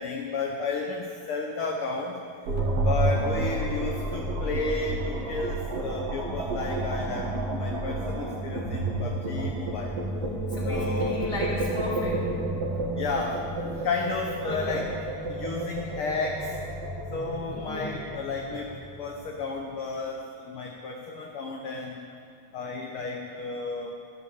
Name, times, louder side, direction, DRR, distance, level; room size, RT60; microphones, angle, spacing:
voice 1, 0.0-2.1 2.8-9.9 10.6-11.1 13.0-13.4 13.8-14.9 15.3-16.5 17.1-18.7 19.0-22.0 22.5-23.9, left 4 dB, 55° left, 0 dB, 1.8 m, -32 dB
sound 1, 2.5-19.7, right 2 dB, 55° right, 2.6 m, -31 dB
voice 2, 3.0-3.3 10.5-12.4 14.4-14.8 17.5-17.9, left 1 dB, 25° left, -4 dB, 3.3 m, -34 dB
13.5 x 12.5 x 7.3 m, 2.3 s
omnidirectional pair, 3.3 m